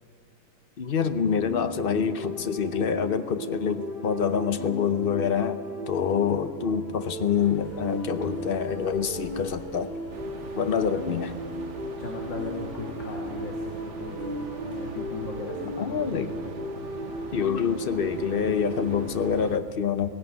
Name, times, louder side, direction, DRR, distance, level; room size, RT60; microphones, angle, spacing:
voice 1, 0.8-5.6 5.9-9.9 10.6-11.3 15.8-16.3 17.3-20.1, left 7 dB, 65° left, 10 dB, 0.5 m, -26 dB
sound 1, 1.3-19.4, equal, 30° right, 7.6 m, -36 dB
sound 2, 7.3-15.0, left 2 dB, 30° left, 2.9 m, -48 dB
sound 3, 10.1-19.6, right 5 dB, 45° right, 1.2 m, -42 dB
voice 2, 11.8-16.7, left 3 dB, 85° left, 0 dB, 2.5 m, -38 dB
17.5 x 17.0 x 9.5 m, 2.3 s
omnidirectional pair, 1.9 m